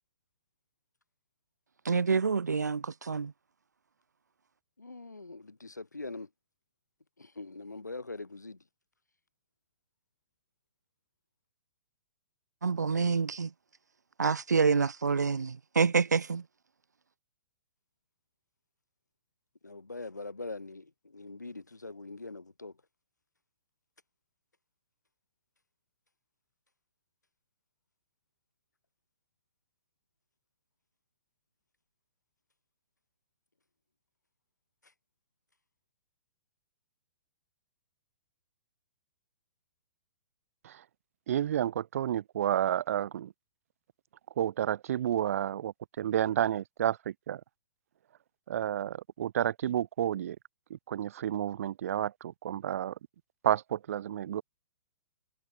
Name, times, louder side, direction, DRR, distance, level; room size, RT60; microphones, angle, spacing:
voice 1, 1.8-3.3 12.6-13.5 14.2-16.4, right 5 dB, 75° right, 1.4 m, -27 dB
voice 2, 4.8-6.3 7.2-8.6 19.6-22.7, left 3 dB, 85° left, 6.2 m, -43 dB
voice 3, 41.3-43.3 44.4-47.4 48.5-50.4 50.7-53.0 53.4-54.4, right 11 dB, 55° right, 4.0 m, -31 dB
figure-of-eight pair, 115°, 9 cm